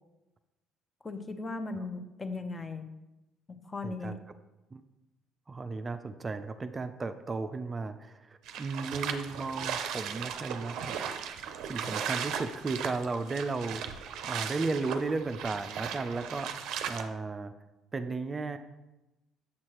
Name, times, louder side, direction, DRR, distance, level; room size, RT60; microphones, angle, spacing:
voice 1, 1.0-2.9 3.5-4.2, left 3 dB, 25° left, 8 dB, 0.7 m, -37 dB
voice 2, 3.8-4.2 4.7-4.8 5.5-10.9 11.6-17.5 17.9-18.6, right 3 dB, 30° right, 9 dB, 0.4 m, -35 dB
sound 1, 8.5-17.1, right 8 dB, 75° right, 0.6 m, -37 dB
7.3 x 6.2 x 3.0 m, 1.0 s
supercardioid pair, 85°, 0 cm